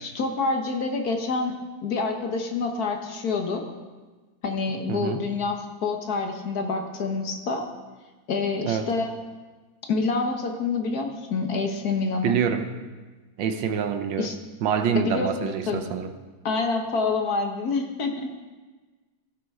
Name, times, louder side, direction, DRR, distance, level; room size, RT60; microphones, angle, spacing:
voice 1, 0.0-1.6 1.8-3.6 4.4-7.7 8.3-9.1 9.9-12.3 14.2-14.4 14.9-15.8 16.4-18.4, left 4 dB, 55° left, 4 dB, 1.4 m, -27 dB
voice 2, 4.9-5.2 8.6-8.9 12.2-12.7 13.4-14.3 14.6-16.1, right 7 dB, 80° right, 8 dB, 1.6 m, -26 dB
16.5 x 9.4 x 3.6 m, 1.3 s
omnidirectional pair, 2.1 m